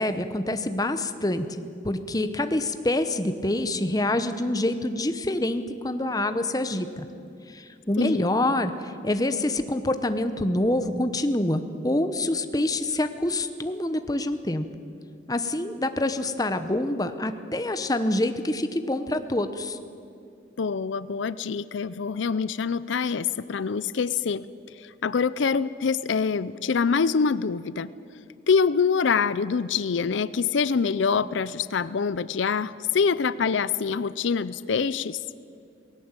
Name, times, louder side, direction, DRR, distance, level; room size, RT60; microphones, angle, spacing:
voice 1, 0.0-7.1 7.5-14.6 15.3-19.8, left 1 dB, 20° left, 9 dB, 0.9 m, -26 dB
voice 2, 8.0-8.3 20.6-24.5 24.8-27.9 28.5-35.2, left 5 dB, 80° left, 17 dB, 0.5 m, -25 dB
19.0 x 17.0 x 8.9 m, 2.6 s
head